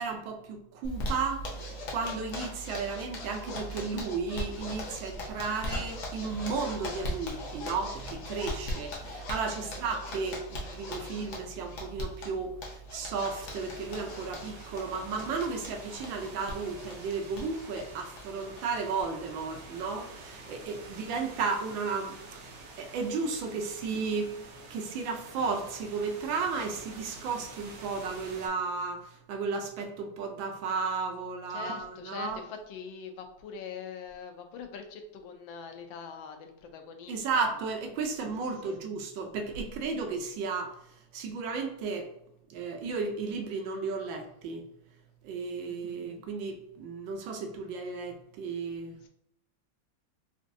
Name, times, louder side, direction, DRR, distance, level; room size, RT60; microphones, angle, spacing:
voice 1, 0.0-24.4 24.7-32.4 37.1-42.1 42.5-44.7 45.2-49.0, right 4 dB, 80° right, 3 dB, 1.3 m, -34 dB
Zipper (clothing), 0.8-19.0 19.3-19.4 19.8-19.9 20.2-20.6, equal, 60° left, 0.9 m, -39 dB
sound 1, 13.2-28.5, right 2 dB, 65° right, 1.0 m, -48 dB
voice 2, 31.5-37.4 38.6-38.8 45.7-46.0 49.0-49.1, left 6 dB, 85° left, 5 dB, 1.4 m, -43 dB
4.2 x 2.6 x 2.5 m, 0.78 s
omnidirectional pair, 2.1 m